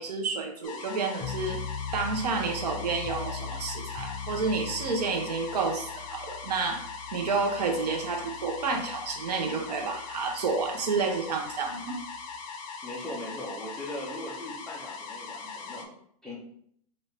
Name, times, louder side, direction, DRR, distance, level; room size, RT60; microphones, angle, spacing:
voice 1, 0.0-1.6 1.9-6.8 7.1-12.0, right 4 dB, 90° right, 4 dB, 0.9 m, -30 dB
sound 1, 0.6-15.9, left 5 dB, 55° left, 0.7 m, -40 dB
sound 2, 1.2-12.4, left 6 dB, 25° left, 0.4 m, -41 dB
voice 2, 12.8-15.9 16.2-16.4, left 1 dB, 5° left, -6 dB, 0.8 m, -39 dB
4.3 x 2.7 x 3.2 m, 0.67 s
supercardioid pair, 165°, 20 cm